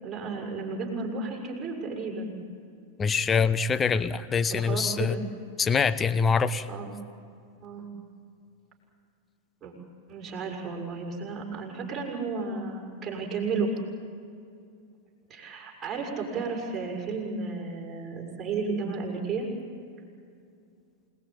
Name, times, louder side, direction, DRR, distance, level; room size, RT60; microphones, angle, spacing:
voice 1, 0.0-2.3 4.5-5.2 6.7-6.9 7.6-7.9 9.6-9.7 10.1-13.7 15.3-19.5, right 4 dB, 20° right, -2 dB, 6.4 m, -33 dB
voice 2, 3.0-5.1 5.6-6.7, left 5 dB, 20° left, 13 dB, 0.9 m, -24 dB
28.5 x 19.5 x 8.8 m, 2.4 s
figure-of-eight pair, 90°, 0 cm